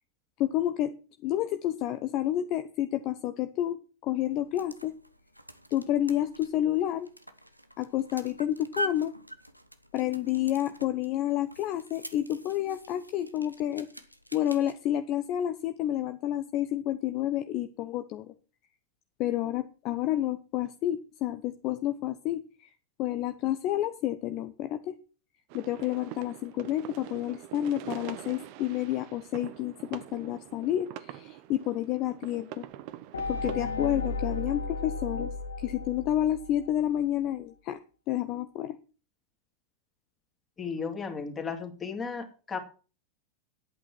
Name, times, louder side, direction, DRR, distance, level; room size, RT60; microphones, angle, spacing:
voice 1, 0.4-0.9 1.2-5.0 5.7-7.1 7.8-9.2 9.9-13.9 14.3-18.3 19.2-22.7 23.0-25.0 25.5-32.6 33.3-37.8 38.1-38.8, left 12 dB, 40° left, 9 dB, 0.8 m, -30 dB
sound 1, 4.3-14.7, right 1 dB, 90° right, 1.0 m, -44 dB
sound 2, 25.5-33.6, right 13 dB, 45° right, 1.0 m, -44 dB
sound 3, 33.1-36.9, left 3 dB, 70° left, 1.4 m, -34 dB
voice 2, 40.6-42.6, left 5 dB, 20° left, 4 dB, 2.7 m, -35 dB
10.5 x 8.6 x 6.0 m, 0.36 s
figure-of-eight pair, 90°, 0 cm